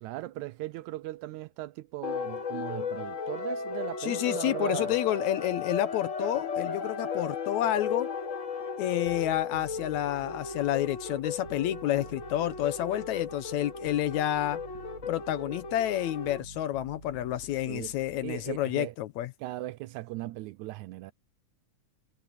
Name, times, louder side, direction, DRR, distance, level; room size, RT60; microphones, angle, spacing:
voice 1, 0.0-4.9 17.6-18.9 19.4-21.1, right 17 dB, 80° right, 1.8 m, -38 dB
sound 1, 2.0-16.4, left 5 dB, 40° left, 1.1 m, -35 dB
voice 2, 4.0-8.1 8.8-14.6 15.1-19.3, left 13 dB, 75° left, 1.9 m, -29 dB
Bass guitar, 9.1-18.7, right 4 dB, 25° right, 1.9 m, -50 dB
omnidirectional pair, 3.6 m